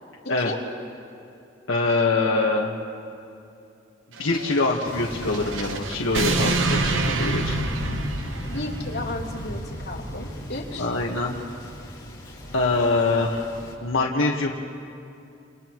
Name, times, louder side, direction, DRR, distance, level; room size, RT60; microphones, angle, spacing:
voice 1, 1.7-2.7 4.2-7.6 10.8-11.4 12.5-13.5 13.8-14.5, left 3 dB, 90° left, -2 dB, 1.4 m, -24 dB
sound 1, 4.2-8.9, right 3 dB, 75° right, 1.0 m, -27 dB
Thunder, 4.8-13.7, equal, 20° left, 4.7 m, -35 dB
voice 2, 8.5-10.9, left 2 dB, 55° left, -4 dB, 3.3 m, -34 dB
30.0 x 28.5 x 3.1 m, 2.6 s
head